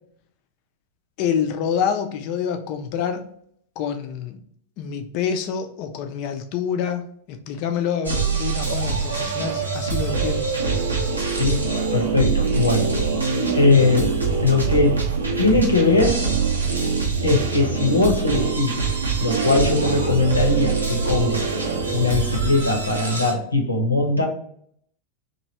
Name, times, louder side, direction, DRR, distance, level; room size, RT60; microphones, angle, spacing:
voice 1, 1.2-3.3 3.8-4.4 4.8-7.0 7.3-10.5 16.6-16.7, left 7 dB, 45° left, 7 dB, 0.5 m, -27 dB
sound 1, 8.0-23.3, right 4 dB, 80° right, 0.7 m, -24 dB
voice 2, 11.3-12.9 13.5-14.1 14.4-15.0 15.4-16.3 17.2-18.8 19.2-21.5 21.9-24.3, left 3 dB, 85° left, 2 dB, 0.8 m, -20 dB
3.1 x 2.6 x 4.1 m, 0.64 s
figure-of-eight pair, 90°, 0 cm